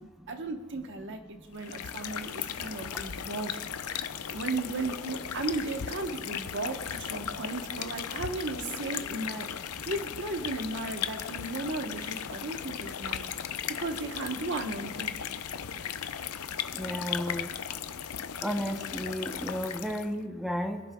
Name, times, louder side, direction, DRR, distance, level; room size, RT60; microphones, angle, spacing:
voice 1, 0.3-3.6 3.8-9.5 9.9-13.3 13.8-15.1, right 2 dB, 55° right, 5 dB, 1.1 m, -35 dB
sound 1, 1.5-20.2, left 8 dB, 80° left, 0.6 m, -37 dB
voice 2, 16.7-17.5 18.4-20.8, equal, ahead, 4 dB, 0.7 m, -33 dB
29.5 x 10.5 x 2.3 m, 1.3 s
head